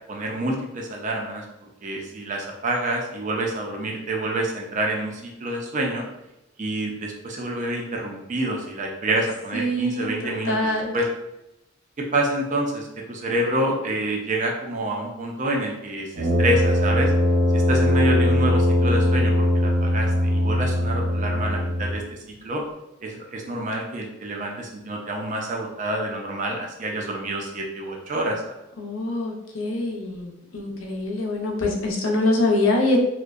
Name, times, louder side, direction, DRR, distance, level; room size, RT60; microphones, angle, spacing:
voice 1, 0.1-1.4 1.8-6.1 6.6-11.1 12.0-17.1 17.5-22.2 22.4-22.6 23.0-28.4, right 1 dB, 35° right, 0 dB, 0.4 m, -27 dB
voice 2, 9.5-11.0 28.8-33.0, left 2 dB, 75° left, 1 dB, 0.5 m, -24 dB
Brass instrument, 16.1-22.0, left 1 dB, 80° right, 0.8 m, -20 dB
2.6 x 2.1 x 2.3 m, 0.93 s
head